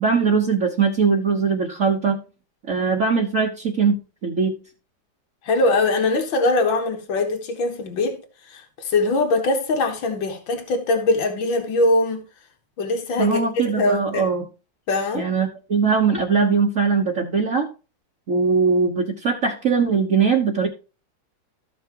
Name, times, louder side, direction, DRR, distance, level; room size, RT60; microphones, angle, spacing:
voice 1, 0.0-2.2 2.7-4.5 13.2-14.5 15.1-17.7 18.3-20.7, right 5 dB, 45° right, 1.5 m, -21 dB
voice 2, 5.4-8.2 8.5-12.2 12.8-13.4 13.8-14.3 14.9-15.3, left 2 dB, 80° left, 2.2 m, -22 dB
14.0 x 5.9 x 3.0 m
omnidirectional pair, 2.0 m